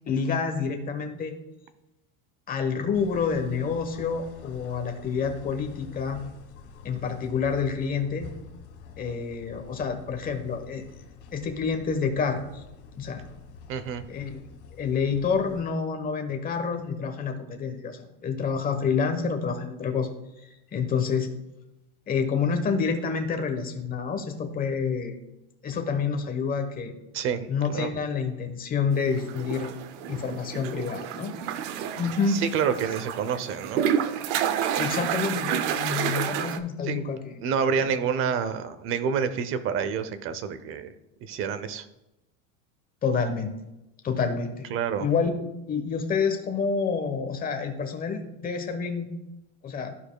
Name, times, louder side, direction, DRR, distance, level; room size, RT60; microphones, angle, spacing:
voice 1, 0.1-1.3 2.5-6.2 6.8-8.3 9.0-10.8 11.3-12.6 13.0-13.2 14.1-14.4 14.8-20.1 20.7-21.3 22.1-25.2 25.6-26.9 27.5-29.7 30.1-31.3 32.0-32.4 34.8-37.4 37.8-37.9 43.0-43.5 44.0-44.7 45.0-45.3 45.7-49.1 49.6-49.9, left 5 dB, 25° left, 6 dB, 1.1 m, -28 dB
sound 1, 2.9-15.6, left 6 dB, 85° left, 2.0 m, -47 dB
voice 2, 13.7-14.1 27.1-27.9 32.3-33.8 36.9-37.0 37.4-40.9 41.2-41.9 44.7-45.1, right 7 dB, 35° right, 12 dB, 0.7 m, -28 dB
sound 2, 29.1-36.6, right 9 dB, 75° right, 0.7 m, -30 dB
14.0 x 4.8 x 2.3 m, 0.93 s
supercardioid pair, 150°, 35 cm